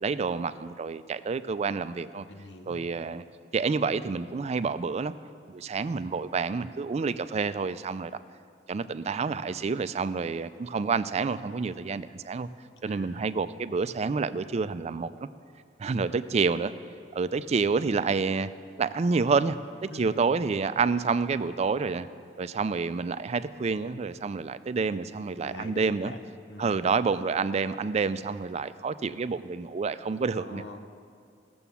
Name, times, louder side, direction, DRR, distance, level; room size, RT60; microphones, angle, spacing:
voice 1, 0.0-2.3 2.7-3.2 3.5-5.1 5.5-8.1 8.7-12.5 12.8-15.3 15.8-16.7 17.1-18.5 18.8-19.6 19.8-22.1 22.4-26.1 26.6-30.6, right 4 dB, 40° right, 13 dB, 0.4 m, -28 dB
voice 2, 2.3-2.8 12.8-13.2 15.9-16.2 19.9-20.2 25.4-26.9 30.3-30.8, left 1 dB, 80° left, 7 dB, 0.9 m, -44 dB
15.5 x 7.0 x 7.0 m, 2.2 s
head